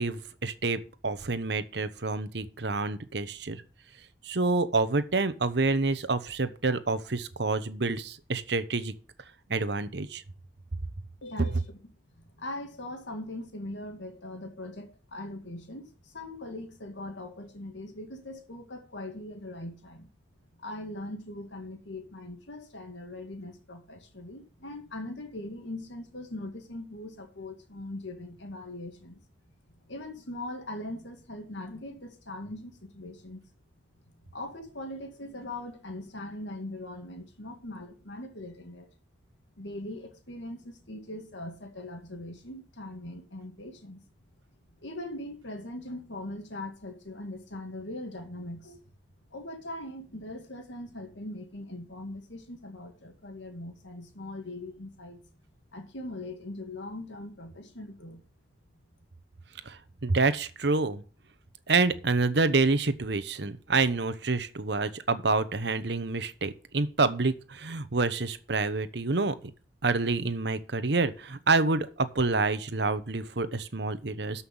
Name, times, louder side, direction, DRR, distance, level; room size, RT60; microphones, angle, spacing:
voice 1, 0.0-3.6 4.2-8.9 9.5-10.2 59.7-61.0 61.7-69.4 69.8-74.4, right 3 dB, 70° right, 1.0 m, -28 dB
voice 2, 11.2-11.8 12.1-20.1 20.5-29.2 29.9-33.4 34.2-38.9 39.6-44.0 44.8-48.8 49.3-55.3 55.7-58.2, left 1 dB, 85° left, 2.3 m, -41 dB
13.0 x 5.7 x 5.5 m
head